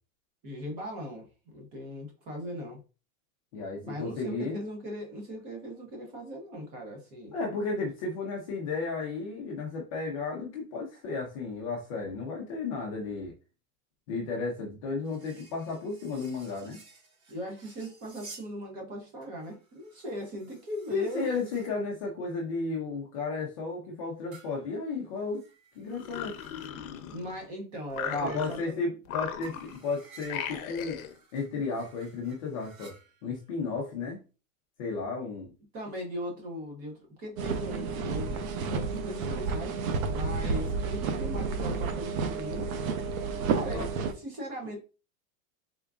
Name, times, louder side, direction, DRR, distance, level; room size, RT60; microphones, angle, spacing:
voice 1, 0.4-2.8 3.8-7.3 17.3-21.3 27.1-28.8 35.7-39.8 40.1-42.7 43.5-44.8, equal, 20° right, 0.6 m, -39 dB
voice 2, 3.5-4.6 7.3-13.3 14.1-16.8 20.9-25.4 25.8-26.4 28.1-31.0 31.3-33.0 33.2-34.2 34.8-35.5 43.7-43.9, left 4 dB, 25° left, 0.5 m, -33 dB
sound 1, 15.0-18.5 19.2-21.8 24.3-26.9 29.4-33.5, right 3 dB, 50° right, 2.0 m, -55 dB
sound 2, 25.9-27.5 27.9-28.7 29.1-29.9 30.3-31.2, left 9 dB, 70° left, 0.7 m, -37 dB
sound 3, 37.4-44.1, right 4 dB, 75° right, 0.8 m, -31 dB
3.7 x 3.5 x 2.3 m
supercardioid pair, 180°, 43 cm